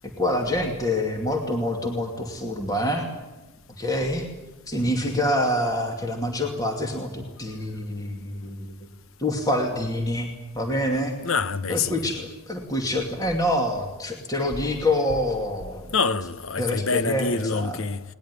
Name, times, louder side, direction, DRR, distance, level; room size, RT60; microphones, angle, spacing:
voice 1, 0.0-3.1 3.8-4.3 4.7-8.7 9.2-10.3 10.5-11.2 11.7-15.9 16.6-17.8, left 1 dB, 15° left, 2.5 m, -26 dB
voice 2, 11.2-12.2 15.9-18.0, left 4 dB, 70° left, 1.0 m, -26 dB
21.0 x 19.5 x 9.8 m
head